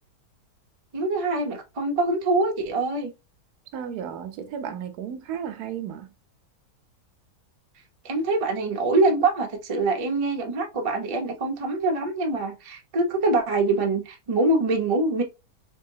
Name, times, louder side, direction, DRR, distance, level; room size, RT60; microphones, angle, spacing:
voice 1, 0.9-3.1 8.0-15.2, right 2 dB, 35° right, 0.5 m, -24 dB
voice 2, 3.7-6.1, right 8 dB, 80° right, 1.1 m, -34 dB
3.7 x 3.5 x 2.7 m
omnidirectional pair, 1.7 m